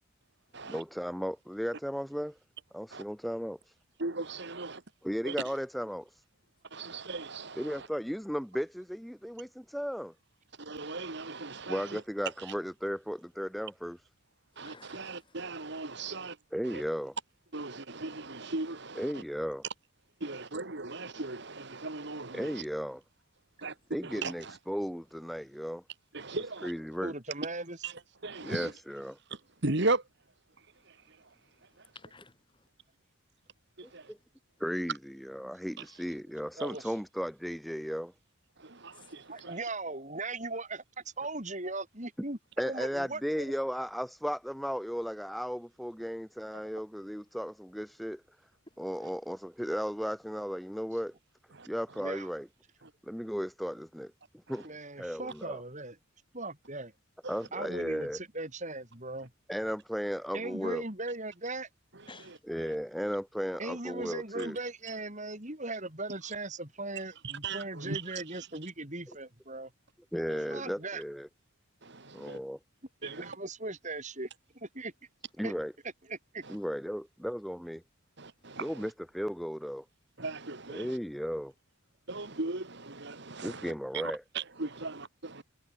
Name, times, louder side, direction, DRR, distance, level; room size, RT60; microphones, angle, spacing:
voice 1, 0.7-2.4 2.7-3.7 5.0-6.2 7.6-10.1 11.7-14.0 16.5-17.1 18.9-19.6 22.3-23.0 23.9-25.8 26.6-27.1 28.4-29.2 34.1-34.2 34.6-38.1 42.6-48.2 48.8-51.1 51.7-52.5 53.0-54.1 54.5-54.7 55.0-55.6 57.3-58.2 59.5-60.8 62.5-64.6 69.1-69.2 70.1-71.3 72.1-72.6 75.4-75.7 76.5-77.8 78.6-79.8 80.7-81.5 83.4-84.2, equal, ahead, 0.8 m, -35 dB
voice 2, 4.0-4.8 5.2-5.4 6.7-7.9 10.6-12.0 14.6-16.4 16.6-16.8 17.5-19.2 20.2-22.6 23.6-23.7 24.0-24.6 26.1-26.7 27.8-27.9 28.2-28.7 29.3-30.0 30.9-31.2 31.8-31.9 33.8-34.1 38.6-39.6 51.5-51.7 57.2-57.4 62.6-62.7 67.2-68.5 70.3-70.4 71.8-72.4 73.0-73.3 76.4-76.5 78.2-78.9 80.2-81.0 82.1-85.4, right 3 dB, 55° right, 2.0 m, -37 dB
voice 3, 14.5-15.4 20.3-20.5 23.6-23.9 30.7-32.7 33.8-34.3 38.7-39.6 48.7-48.9 62.1-62.5 71.8-72.4 76.5-76.7 78.4-78.6 82.2-82.4, left 3 dB, 25° left, 7.0 m, -58 dB
voice 4, 27.0-27.8 36.6-36.9 39.3-40.8 41.2-42.4 42.6-43.4 52.0-52.3 54.6-56.0 56.3-56.9 57.5-59.3 60.3-61.7 63.6-69.7 70.5-71.0 73.0-74.3 74.5-74.9 75.4-75.5 76.1-76.4, right 2 dB, 35° right, 6.0 m, -38 dB
head